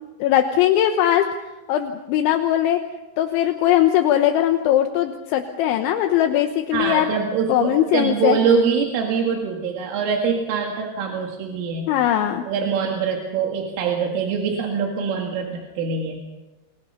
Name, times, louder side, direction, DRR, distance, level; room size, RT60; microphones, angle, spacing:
voice 1, 0.2-1.3 1.7-2.8 3.2-7.2 7.5-8.4 11.9-12.5, left 11 dB, 80° left, 5 dB, 3.4 m, -20 dB
voice 2, 6.7-11.9 12.5-16.2, right 6 dB, 90° right, 1 dB, 4.5 m, -23 dB
29.0 x 24.0 x 5.7 m, 1.1 s
omnidirectional pair, 5.5 m